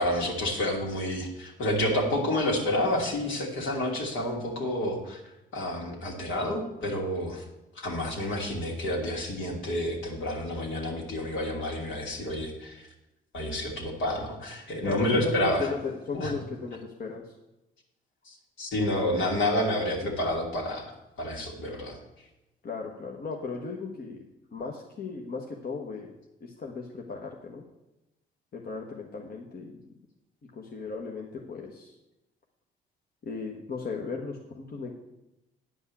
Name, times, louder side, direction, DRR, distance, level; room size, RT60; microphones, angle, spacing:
voice 1, 0.0-5.2 5.5-7.4 7.7-12.9 13.3-15.7 16.1-16.3 18.3-20.9 21.2-22.0, left 1 dB, 75° left, 0 dB, 2.8 m, -29 dB
voice 2, 14.8-17.3 22.6-24.2 24.5-26.1 26.4-27.6 28.5-29.8 30.5-32.0 33.2-34.9, left 4 dB, 50° left, 1 dB, 1.3 m, -36 dB
9.7 x 5.4 x 8.3 m, 0.96 s
cardioid pair, 90°, 20 cm